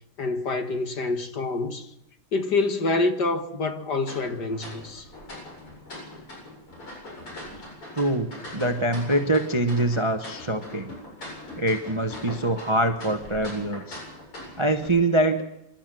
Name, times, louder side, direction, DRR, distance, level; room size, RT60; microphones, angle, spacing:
voice 1, 0.2-1.9 2.3-5.1, left 3 dB, 50° left, 2.1 m, -26 dB
sound 1, 4.0-14.9, left 1 dB, 85° left, 9.0 m, -41 dB
voice 2, 7.9-10.9 11.6-14.0 14.6-15.4, right 1 dB, 20° right, 0.8 m, -24 dB
27.0 x 12.5 x 7.7 m
omnidirectional pair, 2.4 m